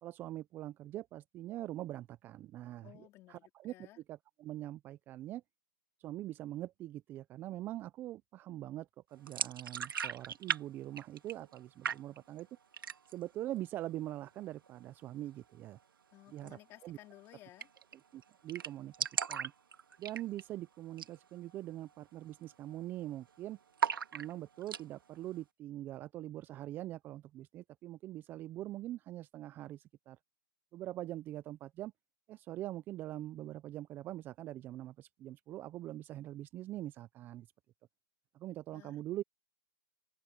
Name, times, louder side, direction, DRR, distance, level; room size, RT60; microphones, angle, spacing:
voice 1, 0.0-5.4 6.0-12.5 13.1-15.8 16.3-17.0 18.1-19.5 20.0-23.6 24.1-30.2 30.7-31.9 32.3-37.5 38.3-39.2, right 14 dB, 15° right, 0.5 m, -43 dB
voice 2, 2.8-4.0 16.1-17.7 38.7-38.9, left 16 dB, 20° left, 3.2 m, -57 dB
sound 1, 9.3-10.6 10.9-11.6 11.8-12.4 12.7-13.3 13.6-13.7 14.0-14.7 16.4-16.5 16.8-16.9 17.1-17.2 17.6-17.9 18.2-18.3 18.5-20.6 20.9-21.2 21.5-21.6 22.2-22.4 22.7-23.3 23.8-24.8, right 7 dB, 75° right, 1.9 m, -37 dB
open air
hypercardioid pair, 145°, 12 cm